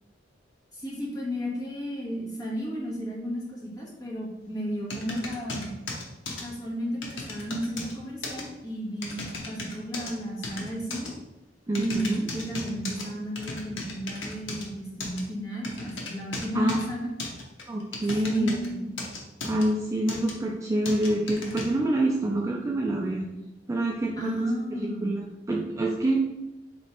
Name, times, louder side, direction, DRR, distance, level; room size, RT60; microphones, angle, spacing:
voice 1, 0.7-5.7 6.4-11.1 11.8-17.1 18.2-19.0 24.2-25.1, equal, 20° left, -5 dB, 1.2 m, -33 dB
sound 1, 4.9-6.4 7.0-7.9 8.2-8.4 9.0-10.1 10.4-11.1 11.7-13.0 13.4-14.6 15.0-15.2 15.6-16.8 17.2-18.7 19.0-19.6 20.1-20.3 20.9-21.6, left 3 dB, 75° left, 0.8 m, -36 dB
voice 2, 11.7-12.3 16.5-16.8 17.7-18.8 19.4-23.3 23.7-24.3 24.8-26.3, right 1 dB, 15° right, -2 dB, 0.3 m, -27 dB
3.2 x 3.0 x 4.3 m, 0.96 s
head